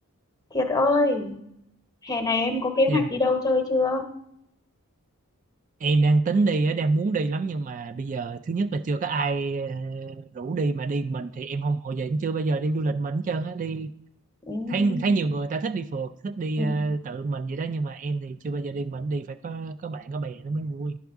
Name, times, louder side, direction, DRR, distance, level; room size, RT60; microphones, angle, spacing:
voice 1, 0.5-1.3 2.0-4.0 14.5-15.1 16.6-16.9, left 2 dB, 15° left, 5 dB, 1.0 m, -24 dB
voice 2, 5.8-13.9 14.7-21.0, right 3 dB, 35° right, 9 dB, 0.3 m, -27 dB
10.5 x 5.9 x 3.5 m, 0.75 s
head